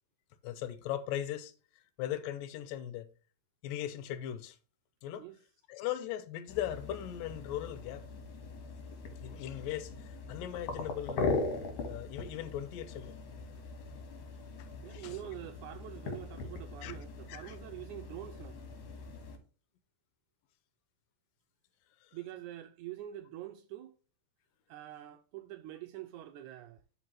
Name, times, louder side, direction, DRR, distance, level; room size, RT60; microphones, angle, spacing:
voice 1, 0.4-1.5 2.0-3.1 3.6-4.6 5.0-5.2 5.7-8.0 9.2-11.4 11.9-13.1 14.6-15.1 16.8-17.0 17.3-17.6 22.0-22.1, left 11 dB, 85° left, 2.4 m, -39 dB
sound 1, 6.5-19.4, left 3 dB, 65° left, 2.8 m, -40 dB
voice 2, 14.8-18.6 22.1-24.0 24.7-26.8, right 13 dB, 80° right, 1.8 m, -45 dB
11.5 x 5.3 x 3.1 m
omnidirectional pair, 4.0 m